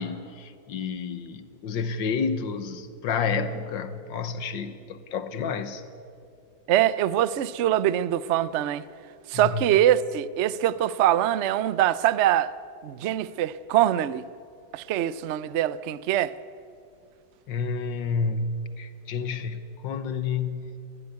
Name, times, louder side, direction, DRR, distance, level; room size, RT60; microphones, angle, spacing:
voice 1, 0.0-5.8 9.3-9.7 17.5-20.8, left 5 dB, 85° left, 1.9 m, -30 dB
voice 2, 6.7-8.8 9.3-12.5 12.8-14.2 14.7-16.3, right 12 dB, 80° right, 0.6 m, -23 dB
21.0 x 16.0 x 9.6 m
omnidirectional pair, 2.0 m